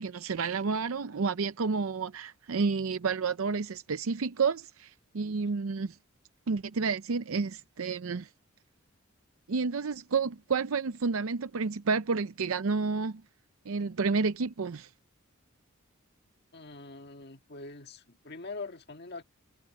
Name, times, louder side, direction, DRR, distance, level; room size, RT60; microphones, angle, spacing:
voice 1, 0.0-6.0 6.5-8.3 9.5-13.2 13.7-14.9, right 4 dB, 85° right, 0.6 m, -30 dB
voice 2, 16.5-19.2, left 3 dB, 50° left, 1.7 m, -43 dB
head